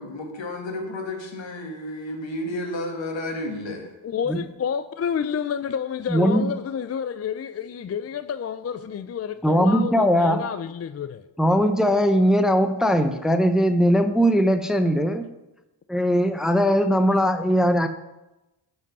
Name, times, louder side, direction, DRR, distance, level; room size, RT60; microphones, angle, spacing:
voice 1, 0.0-3.9, left 1 dB, 75° left, 2.1 m, -32 dB
voice 2, 4.0-11.2, left 7 dB, 35° left, 0.4 m, -29 dB
voice 3, 6.1-6.5 9.4-10.4 11.4-15.3 15.9-17.9, equal, ahead, 0.6 m, -20 dB
10.5 x 5.3 x 5.5 m
cardioid pair, 70°, 45 cm